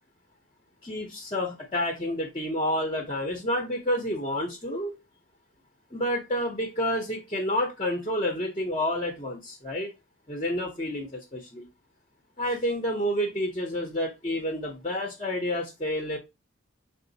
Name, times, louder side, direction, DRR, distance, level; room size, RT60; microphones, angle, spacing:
voice 1, 0.8-5.0 5.9-9.9 10.3-11.7 12.4-16.2, left 1 dB, 30° left, 2 dB, 0.7 m, -29 dB
5.7 x 2.0 x 3.9 m, 0.23 s
head